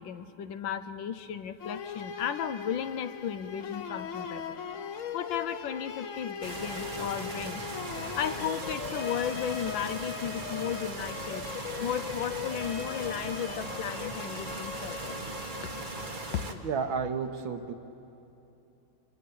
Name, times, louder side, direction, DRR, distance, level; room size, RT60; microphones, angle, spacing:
voice 1, 0.0-4.6 5.1-7.6 8.2-11.4 11.8-15.2 16.3-16.6, left 8 dB, 70° left, 11 dB, 1.4 m, -35 dB
sound 1, 1.6-16.7, left 7 dB, 55° left, 0.9 m, -40 dB
sound 2, 6.4-16.5, right 3 dB, 30° right, 1.1 m, -39 dB
voice 2, 16.6-17.7, right 5 dB, 65° right, 7 dB, 1.9 m, -31 dB
26.5 x 26.5 x 8.6 m, 2.9 s
omnidirectional pair, 2.3 m